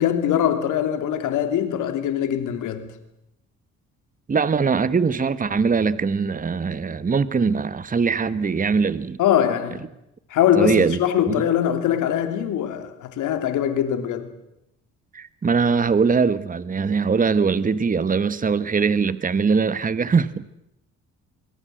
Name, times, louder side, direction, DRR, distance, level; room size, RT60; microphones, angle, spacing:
voice 1, 0.0-2.9 9.2-9.8 10.3-14.3, left 10 dB, 85° left, 3.0 m, -22 dB
voice 2, 4.3-9.2 10.6-11.0 11.3-11.4 15.1-20.4, right 5 dB, 25° right, 1.2 m, -21 dB
25.0 x 22.5 x 7.8 m
cardioid pair, 90°, 30 cm